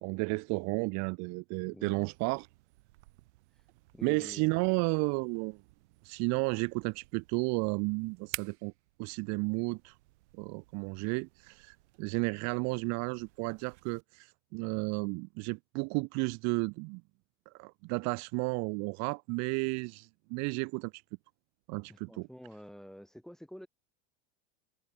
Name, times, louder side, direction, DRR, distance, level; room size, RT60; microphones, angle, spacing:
voice 1, 0.0-2.5 4.0-5.6 6.0-8.7 9.0-9.9 10.4-17.0 17.6-20.9 21.7-22.3, right 31 dB, 50° right, 0.7 m, -33 dB
voice 2, 1.7-2.0 3.9-4.5 21.9-23.7, equal, ahead, 1.4 m, -48 dB
sound 1, 2.1-14.0, right 20 dB, 80° right, 4.4 m, -52 dB
supercardioid pair, 130°, 34 cm